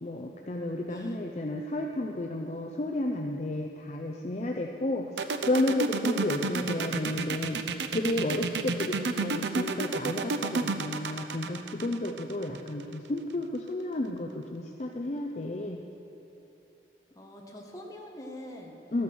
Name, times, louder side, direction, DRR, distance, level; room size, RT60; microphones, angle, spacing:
voice 1, 0.0-15.8 18.9-19.0, left 1 dB, 40° left, 2 dB, 0.5 m, -32 dB
voice 2, 0.9-1.2 6.4-6.9 9.1-9.5 17.1-18.8, equal, 20° left, 0 dB, 1.3 m, -45 dB
sound 1, 5.2-12.9, right 4 dB, 85° right, 0.6 m, -30 dB
13.5 x 9.4 x 6.1 m, 2.8 s
head